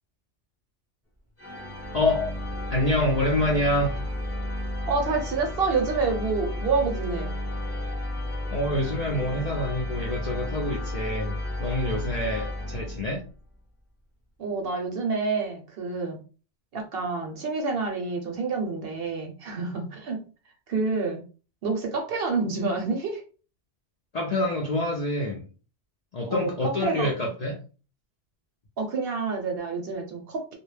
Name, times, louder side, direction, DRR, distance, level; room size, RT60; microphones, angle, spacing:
sound 1, 1.4-13.3, left 1 dB, 15° left, 0.5 m, -32 dB
voice 1, 1.9-2.4 2.7-4.1 8.5-13.2 24.1-25.5 26.1-27.6, left 1 dB, 85° left, 0.3 m, -27 dB
voice 2, 4.9-7.3 14.4-16.2 16.7-20.2 20.7-21.2 21.6-23.2 26.3-27.3 28.8-30.6, right 4 dB, 60° right, 0.7 m, -28 dB
2.2 x 2.0 x 3.1 m
omnidirectional pair, 1.3 m